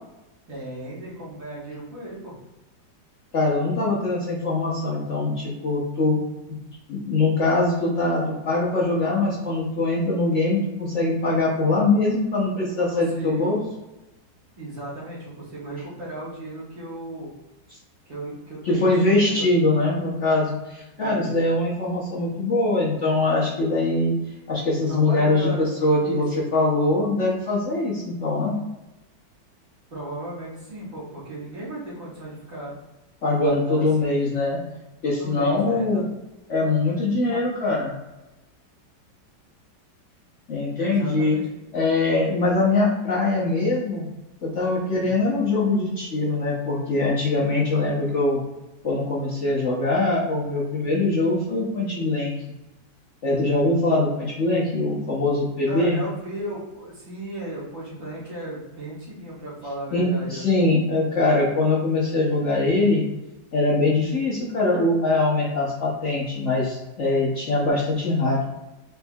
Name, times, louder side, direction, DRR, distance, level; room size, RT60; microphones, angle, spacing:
voice 1, 0.5-2.4 12.4-12.5 12.9-13.7 14.6-17.3 18.1-19.5 21.0-21.3 24.9-25.7 26.0-26.2 29.9-32.7 33.4-34.1 35.0-36.0 37.2-37.4 40.8-41.6 44.9-45.2 53.2-53.7 55.7-60.5, right 1 dB, 50° right, -7 dB, 1.8 m, -35 dB
voice 2, 3.3-6.2 6.9-13.6 18.6-24.1 24.5-28.6 33.2-34.6 35.0-36.1 36.5-37.9 40.5-41.4 41.7-44.0 44.4-48.4 48.8-52.4 53.2-56.0 59.9-63.0 63.5-68.4, left 2 dB, 50° left, -5 dB, 1.0 m, -22 dB
4.4 x 4.2 x 2.3 m, 1.0 s
omnidirectional pair, 1.9 m